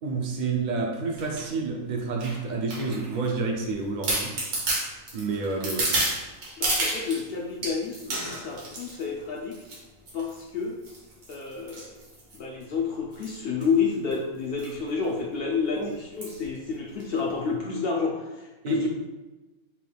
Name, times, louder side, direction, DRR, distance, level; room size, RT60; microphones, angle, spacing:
voice 1, 0.0-4.4 5.1-5.9 15.8-15.9 18.6-18.9, right 4 dB, 65° right, 2 dB, 0.4 m, -29 dB
sound 1, 1.2-1.4 2.2-3.3 3.7-3.8 4.0-7.2 7.6-9.0 9.5-9.8 10.1-10.4 10.8-12.6 13.1-13.4 13.6-13.7 13.9-14.1 14.6-14.8 15.1-15.2 16.2-16.4 17.0-17.1, right 2 dB, 85° right, 1.7 m, -30 dB
voice 2, 6.6-9.6 10.1-10.8 11.3-12.0 12.3-18.9, left 5 dB, 70° left, 0 dB, 0.5 m, -29 dB
5.7 x 2.3 x 3.3 m, 1.1 s
omnidirectional pair, 1.5 m